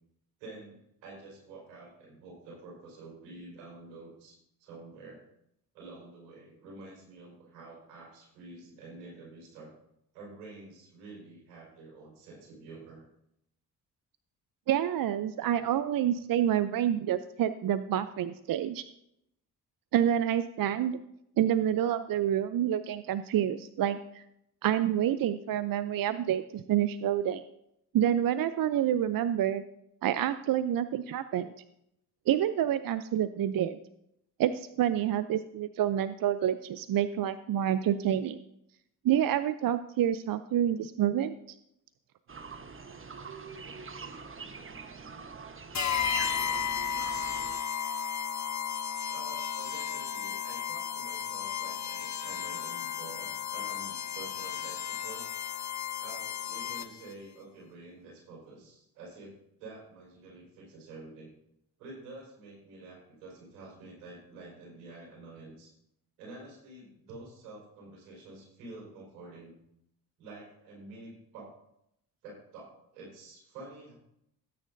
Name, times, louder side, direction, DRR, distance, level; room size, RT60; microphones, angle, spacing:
voice 1, 0.4-5.3 5.7-9.7 10.1-13.1 49.1-55.2 56.0-61.3 61.8-65.7 66.2-69.5 70.2-71.5 72.2-73.9, right 2 dB, 85° right, -2 dB, 4.9 m, -48 dB
voice 2, 14.7-18.8 19.9-21.0 21.4-24.2 24.6-27.4 27.9-29.6 30.0-31.5 32.3-33.8 34.4-38.4 39.0-41.4, right 10 dB, 55° right, 13 dB, 0.6 m, -28 dB
sound 1, 42.3-47.6, right 4 dB, 30° right, 1.2 m, -42 dB
sound 2, 45.7-57.1, left 8 dB, 40° left, 0.9 m, -34 dB
17.0 x 9.0 x 2.7 m, 0.78 s
hypercardioid pair, 45°, 42 cm